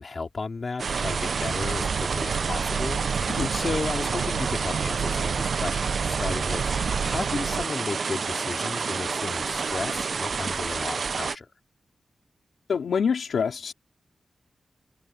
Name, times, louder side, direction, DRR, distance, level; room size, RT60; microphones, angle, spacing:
voice 1, 0.0-11.5, left 4 dB, 35° left, 2.9 m, -34 dB
sound 1, 0.8-11.4, right 5 dB, 50° right, 0.5 m, -29 dB
sound 2, 0.8-7.7, right 6 dB, 85° right, 4.1 m, -31 dB
voice 2, 12.7-13.7, left 6 dB, 70° left, 3.5 m, -26 dB
wide cardioid pair, 170°, 0 cm